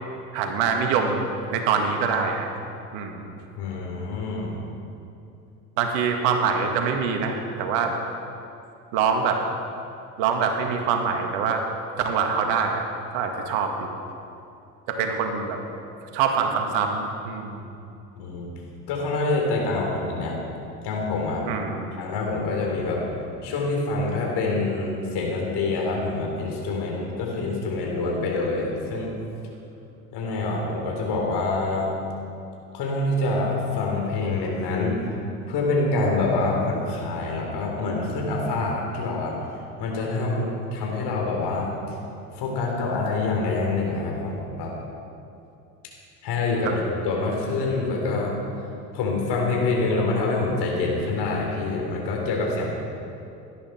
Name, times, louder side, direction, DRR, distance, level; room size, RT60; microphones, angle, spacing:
voice 1, 0.3-2.5 2.9-3.3 5.8-7.9 8.9-9.4 10.2-11.6 12.0-12.8 13.1-13.9 14.9-15.6 16.1-17.6 21.5-21.9 46.6-46.7, right 6 dB, 60° right, 4 dB, 2.0 m, -24 dB
voice 2, 3.6-4.5 18.2-18.5 18.9-20.4 20.8-21.5 22.0-23.1 23.4-29.1 30.1-31.9 32.7-35.1 35.5-39.4 39.8-41.7 42.3-44.7 46.2-48.3 48.9-52.7, left 3 dB, 55° left, -1 dB, 3.9 m, -26 dB
17.5 x 12.0 x 4.5 m, 2.7 s
hypercardioid pair, 65°, 48 cm